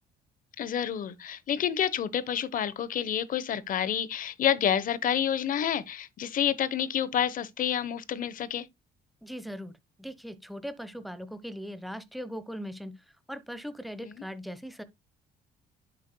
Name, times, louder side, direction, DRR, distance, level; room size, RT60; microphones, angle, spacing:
voice 1, 0.6-8.7 14.0-14.2, left 9 dB, 55° left, 1.1 m, -29 dB
voice 2, 9.2-9.7 10.0-13.0 13.3-14.8, equal, ahead, 1.2 m, -39 dB
10.5 x 8.0 x 2.3 m
cardioid pair, 110°, 17 cm